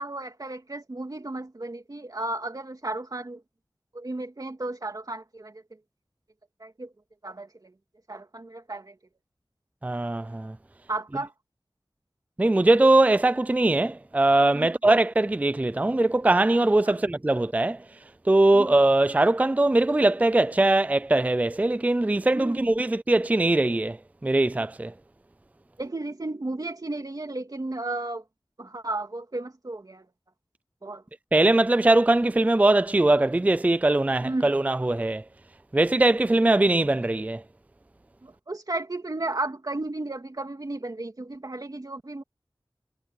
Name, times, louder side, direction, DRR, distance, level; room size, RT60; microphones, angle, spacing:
voice 1, 0.0-3.4 3.9-5.5 6.6-6.9 7.2-7.7 8.1-8.9 10.9-11.3 14.5-14.8 16.8-17.0 18.5-18.7 22.3-22.7 25.8-28.2 28.6-30.0 30.8-31.0 34.2-34.5 38.2-42.2, right 2 dB, 50° right, 2.8 m, -33 dB
voice 2, 9.8-10.5 12.4-17.8 18.3-24.0 24.2-24.9 31.3-35.2 35.7-37.4, right 2 dB, 20° right, 0.4 m, -21 dB
wide cardioid pair, 70°, 8 cm